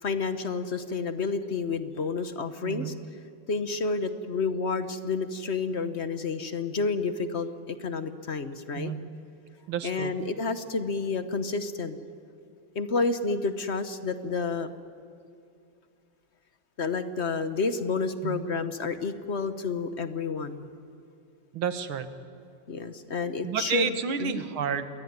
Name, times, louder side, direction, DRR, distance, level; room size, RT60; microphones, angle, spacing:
voice 1, 0.0-2.9 3.5-8.9 9.8-12.0 12.7-14.7 16.8-20.7 22.7-23.9 24.2-24.4, left 4 dB, 40° left, 10 dB, 1.2 m, -30 dB
voice 2, 2.6-2.9 8.7-9.1 9.7-10.1 18.2-18.4 21.5-22.1 23.4-24.8, right 7 dB, 90° right, 10 dB, 2.2 m, -30 dB
28.0 x 22.0 x 9.6 m, 2.3 s
omnidirectional pair, 2.2 m